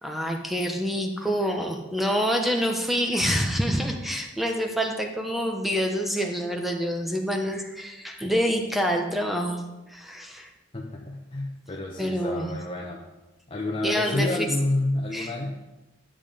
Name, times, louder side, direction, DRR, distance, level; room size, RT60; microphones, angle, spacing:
voice 1, 0.0-9.6 9.9-10.5 12.0-12.5 13.8-14.5 15.1-15.3, equal, ahead, 2 dB, 1.0 m, -27 dB
voice 2, 10.7-13.0 13.5-15.5, left 2 dB, 30° left, -2 dB, 1.0 m, -29 dB
11.5 x 7.5 x 5.1 m, 1.1 s
head